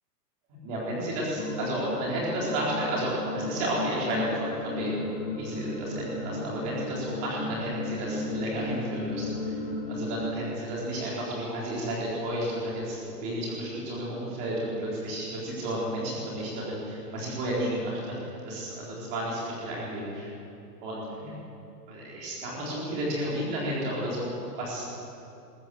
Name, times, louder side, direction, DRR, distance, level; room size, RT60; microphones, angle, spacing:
voice 1, 0.6-9.5 9.9-20.3 20.8-21.3 21.9-24.8, right 1 dB, 15° right, -5 dB, 4.1 m, -32 dB
sound 1, 1.3-10.2, left 2 dB, 25° left, 5.8 m, -34 dB
21.0 x 18.5 x 7.8 m, 2.7 s
hypercardioid pair, 180°, 49 cm